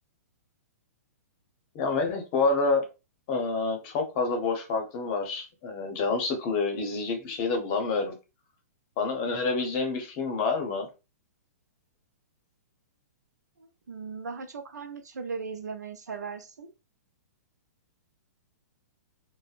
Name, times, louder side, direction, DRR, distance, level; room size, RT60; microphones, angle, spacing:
voice 1, 1.7-2.9 3.3-8.1 9.0-10.9, left 4 dB, 40° left, 0.8 m, -28 dB
voice 2, 13.9-16.7, right 5 dB, 85° right, 0.4 m, -37 dB
2.6 x 2.1 x 2.4 m
hypercardioid pair, 125°, 9 cm